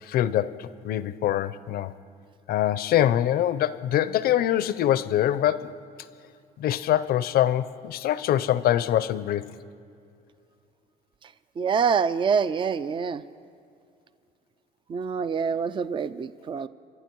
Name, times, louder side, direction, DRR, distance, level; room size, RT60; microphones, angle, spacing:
voice 1, 0.0-1.9 2.5-5.7 6.6-9.5, left 12 dB, 65° left, 16 dB, 0.6 m, -24 dB
voice 2, 11.6-13.2 14.9-16.7, right 6 dB, 30° right, 15 dB, 0.4 m, -26 dB
27.0 x 11.5 x 4.6 m, 2.5 s
cardioid pair, 110°, 17 cm